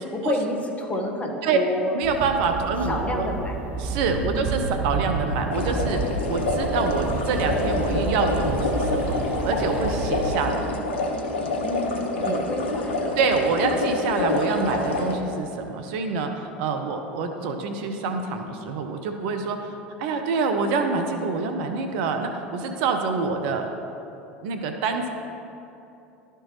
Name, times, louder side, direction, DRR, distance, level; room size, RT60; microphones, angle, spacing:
voice 1, 0.1-2.0 2.9-3.5 4.2-4.5 11.6-13.1, left 1 dB, 20° left, 1 dB, 1.2 m, -29 dB
voice 2, 1.9-3.3 3.8-9.1 9.4-10.8 12.2-12.4 13.2-19.7 20.0-23.7 24.4-25.1, right 4 dB, 60° right, 5 dB, 0.7 m, -26 dB
sound 1, 2.0-10.3, right 3 dB, 30° right, 0.8 m, -30 dB
sound 2, 5.5-15.1, left 2 dB, 75° left, 0.9 m, -27 dB
12.5 x 4.5 x 3.0 m, 2.8 s
hypercardioid pair, 80°, 6 cm